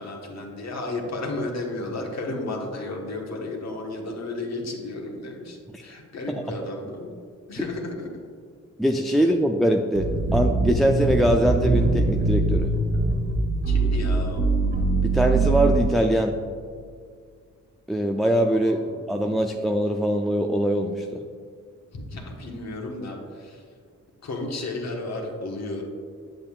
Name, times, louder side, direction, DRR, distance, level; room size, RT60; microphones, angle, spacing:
voice 1, 0.0-7.1 7.5-8.1 9.2-9.3 13.7-14.5 18.7-19.1 21.9-23.6 24.2-25.8, left 2 dB, 60° left, 0 dB, 1.3 m, -33 dB
voice 2, 8.8-12.7 15.0-16.4 17.9-21.2, equal, ahead, 3 dB, 0.4 m, -22 dB
sound 1, 10.0-15.9, right 3 dB, 35° right, 1.4 m, -22 dB
7.6 x 6.9 x 2.4 m, 2.1 s
cardioid pair, 60°, 31 cm